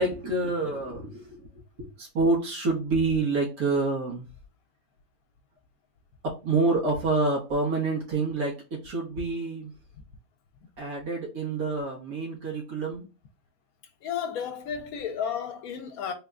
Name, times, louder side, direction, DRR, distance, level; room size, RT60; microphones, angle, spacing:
voice 1, 0.0-1.4 1.8-4.2 6.2-9.7 10.8-13.1, right 3 dB, 75° right, 1.6 m, -27 dB
voice 2, 14.0-16.1, left 8 dB, 80° left, 1.1 m, -32 dB
3.5 x 2.2 x 3.5 m
omnidirectional pair, 1.6 m